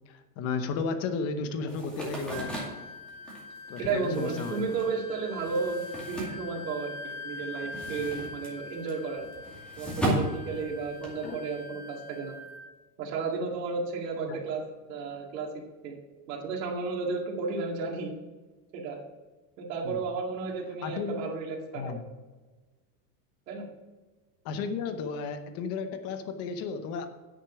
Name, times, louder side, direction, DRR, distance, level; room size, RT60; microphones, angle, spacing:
voice 1, 0.1-2.5 3.7-4.7 11.2-11.4 14.2-14.4 19.8-20.0 20.8-21.3 21.7-22.1 24.4-27.1, left 5 dB, 30° left, 9 dB, 0.8 m, -33 dB
sound 1, 1.7-7.1 7.4-11.3, right 1 dB, ahead, 2.2 m, -36 dB
Wind instrument woodwind instrument, 2.3-12.7, left 3 dB, 65° right, 1.4 m, -43 dB
voice 2, 3.8-9.3 9.8-12.3 13.0-14.6 14.9-15.5 15.8-15.9 16.3-18.2 18.7-19.0 19.6-22.0 23.5-23.7, right 4 dB, 90° right, -2 dB, 2.4 m, -33 dB
9.9 x 6.5 x 5.7 m, 1.3 s
supercardioid pair, 165°, 48 cm